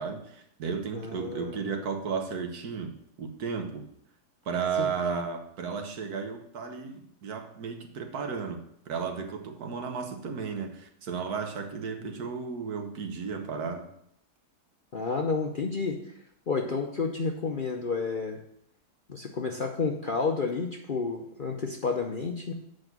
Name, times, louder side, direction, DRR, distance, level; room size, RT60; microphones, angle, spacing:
voice 1, 0.0-3.8 4.4-8.6 8.9-13.9, right 5 dB, 70° right, 5 dB, 1.5 m, -34 dB
voice 2, 0.9-1.6 4.8-4.9 12.0-12.1 14.9-16.0 16.5-18.4 19.1-22.5, left 4 dB, 50° left, 2 dB, 0.6 m, -30 dB
7.7 x 5.3 x 6.0 m, 0.72 s
omnidirectional pair, 1.7 m